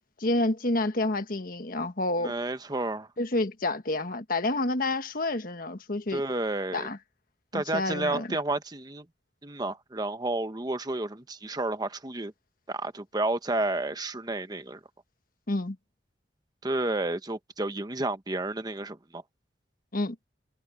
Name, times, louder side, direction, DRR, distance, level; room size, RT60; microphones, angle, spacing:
voice 1, 0.2-2.3 3.2-6.2 6.7-7.0 7.5-8.4 15.5-15.8 19.9-20.1, left 2 dB, 50° left, 1.4 m, -29 dB
voice 2, 2.2-3.1 6.1-6.9 7.5-9.1 9.4-12.3 12.7-14.8 16.6-19.2, right 2 dB, 20° right, 1.1 m, -31 dB
head